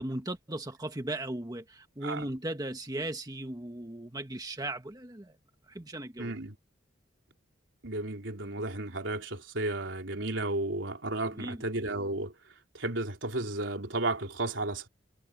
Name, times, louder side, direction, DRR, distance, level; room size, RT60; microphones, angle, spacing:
voice 1, 0.0-5.4 5.7-6.3 11.2-11.6, right 1 dB, 20° right, 1.5 m, -37 dB
voice 2, 6.2-6.6 7.8-12.3 12.7-14.9, right 2 dB, 75° right, 3.7 m, -33 dB
head